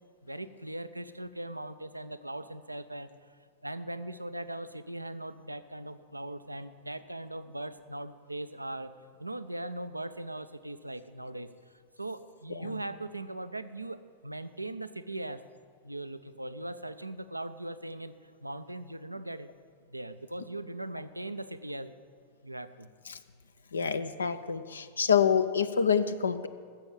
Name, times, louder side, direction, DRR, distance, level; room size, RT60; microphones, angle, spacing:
voice 1, 0.2-3.1 3.6-11.5 12.0-15.4 15.8-19.5 19.9-21.9 22.4-22.9, right 1 dB, 85° right, 12 dB, 0.5 m, -40 dB
voice 2, 23.7-26.5, left 7 dB, 70° left, 11 dB, 0.5 m, -27 dB
14.5 x 7.0 x 7.5 m, 2.1 s
figure-of-eight pair, 90°, 0 cm